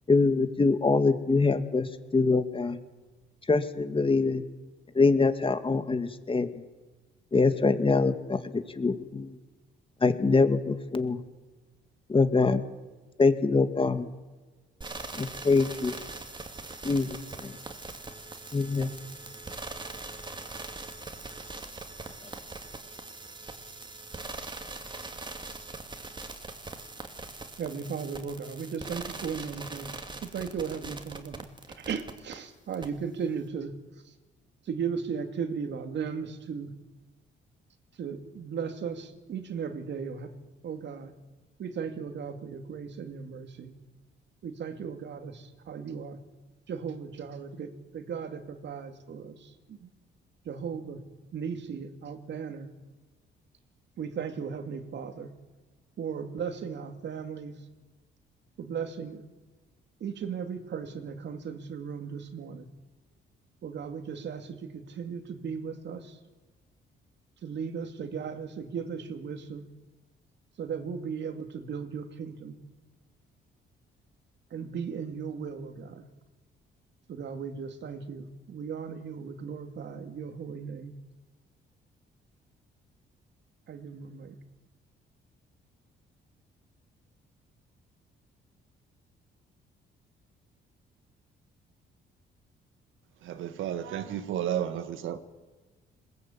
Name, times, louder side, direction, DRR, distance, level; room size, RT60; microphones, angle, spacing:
voice 1, 0.1-2.8 3.5-4.4 4.9-6.6 7.3-9.3 10.0-11.2 12.1-12.7 13.2-14.1 15.1-16.0 16.8-17.6 18.5-18.9, left 4 dB, 25° left, 10 dB, 1.9 m, -24 dB
sound 1, 14.8-32.3 32.7-32.9, right 3 dB, 25° right, 2.6 m, -41 dB
voice 2, 27.6-31.5 31.8-33.7 34.0-34.1 34.6-36.7 38.0-40.3 40.6-41.1 41.6-43.7 44.4-46.2 46.7-49.9 50.4-51.0 51.3-52.7 54.0-55.3 56.0-57.7 58.6-59.3 60.0-62.7 63.6-66.2 67.4-69.7 70.6-72.6 74.5-76.1 77.1-81.0 83.7-84.4, right 6 dB, 65° right, 8 dB, 2.6 m, -36 dB
voice 3, 93.2-95.2, right 10 dB, 85° right, 10 dB, 1.7 m, -32 dB
21.5 x 19.5 x 8.7 m, 1.3 s
cardioid pair, 90°, 20 cm